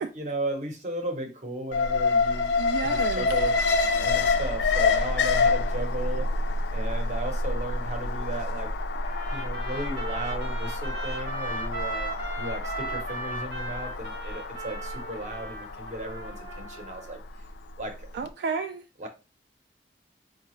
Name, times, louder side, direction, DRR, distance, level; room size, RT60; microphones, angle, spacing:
voice 1, 0.1-2.5 2.8-3.5 3.9-6.3 6.7-8.7 9.3-17.2 17.8-18.1 19.0-19.1, right 1 dB, 40° right, 0.8 m, -35 dB
Alarm, 1.7-17.8 18.1-18.2, left 3 dB, 70° left, 0.4 m, -27 dB
voice 2, 2.6-3.3 18.1-19.1, right 5 dB, 65° right, 0.3 m, -32 dB
Trumpet, 9.0-17.2, right 3 dB, 80° right, 1.0 m, -37 dB
4.7 x 2.3 x 3.0 m
head